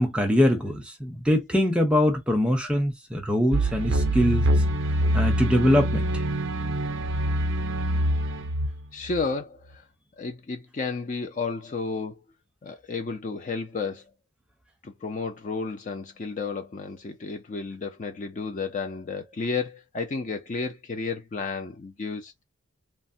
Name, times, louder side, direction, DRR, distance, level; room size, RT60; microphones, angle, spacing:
voice 1, 0.0-4.5 5.1-6.1, left 1 dB, 5° right, 0.6 m, -23 dB
sound 1, 3.5-9.2, right 1 dB, 60° right, 0.4 m, -25 dB
voice 2, 8.9-9.8 10.2-12.2 12.6-14.0 14.8-22.4, left 4 dB, 35° left, 0.4 m, -32 dB
3.2 x 2.1 x 2.6 m
head